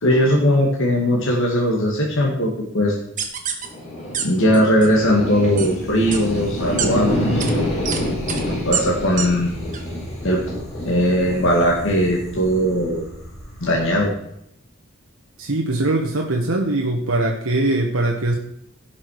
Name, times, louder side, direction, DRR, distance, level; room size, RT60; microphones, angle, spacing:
voice 1, 0.0-3.0 4.2-8.0 8.6-9.5 10.2-10.4 10.9-13.0 13.6-14.1, equal, 65° left, -1 dB, 2.1 m, -19 dB
sound 1, 3.2-3.7 4.1-4.2 4.5-4.9 5.6-5.7 6.1-6.2 6.8-6.9 7.4-7.5 7.9-8.0 8.3-8.4 8.7-8.8 9.2-9.3 9.7-9.8, right 7 dB, 40° right, 1.6 m, -25 dB
sound 2, 3.6-14.0, left 1 dB, 35° left, 5.2 m, -27 dB
voice 2, 15.4-18.4, right 2 dB, 85° right, 0 dB, 1.4 m, -21 dB
16.5 x 6.1 x 4.8 m, 0.76 s
head